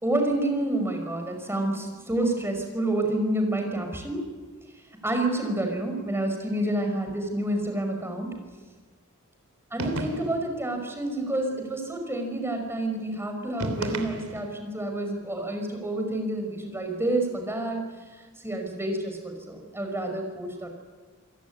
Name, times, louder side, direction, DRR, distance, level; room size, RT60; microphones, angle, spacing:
voice 1, 0.0-4.2 5.0-8.3 9.7-17.8 18.4-20.7, right 1 dB, 10° right, 4 dB, 5.4 m, -28 dB
sound 1, 9.8-10.5 13.6-14.6, right 1 dB, 85° right, 3.2 m, -33 dB
28.0 x 17.5 x 9.7 m, 1.4 s
head